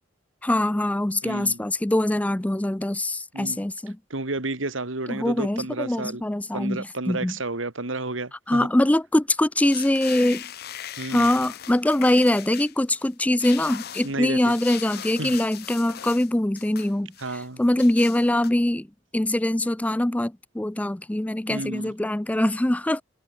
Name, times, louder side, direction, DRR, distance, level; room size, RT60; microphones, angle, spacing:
voice 1, 0.4-4.0 5.1-7.3 8.5-10.4 11.1-18.9 19.1-23.0, left 1 dB, 5° left, 0.4 m, -23 dB
voice 2, 1.2-1.6 3.3-3.6 4.1-6.2 6.5-8.7 11.0-11.3 14.0-14.5 15.2-15.4 17.2-17.6 21.5-21.9, right 2 dB, 90° right, 2.5 m, -31 dB
sound 1, 9.6-13.1 13.4-16.3 16.6-17.4 17.8-18.5, left 11 dB, 55° left, 0.7 m, -39 dB
head